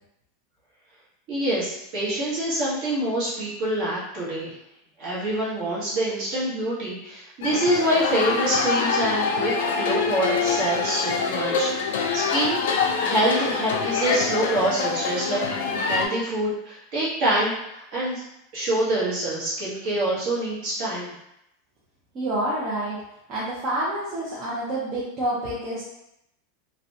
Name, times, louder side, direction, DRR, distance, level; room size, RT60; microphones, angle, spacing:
voice 1, 1.3-4.5 5.0-9.5 9.8-12.7 13.0-18.2 18.5-21.1, right 1 dB, 40° right, -7 dB, 1.0 m, -26 dB
sound 1, 7.4-16.1, left 5 dB, 80° left, 0.4 m, -25 dB
voice 2, 22.1-23.0 23.3-25.8, right 1 dB, 25° right, -8 dB, 0.5 m, -28 dB
2.5 x 2.1 x 2.6 m, 0.84 s
supercardioid pair, 175°, 0 cm